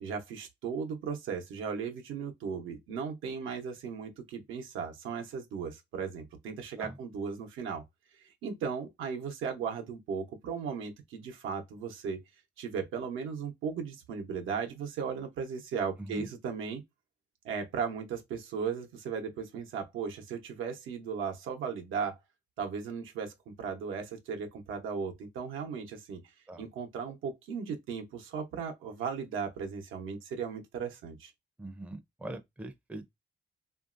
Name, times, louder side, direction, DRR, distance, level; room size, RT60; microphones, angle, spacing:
voice 1, 0.0-7.8 8.4-12.2 12.6-16.8 17.4-22.2 22.6-26.2 26.6-31.3, right 6 dB, 85° right, 0.8 m, -36 dB
voice 2, 31.6-33.0, right 2 dB, 5° right, 0.4 m, -42 dB
3.0 x 2.6 x 2.4 m
cardioid pair, 90°, 20 cm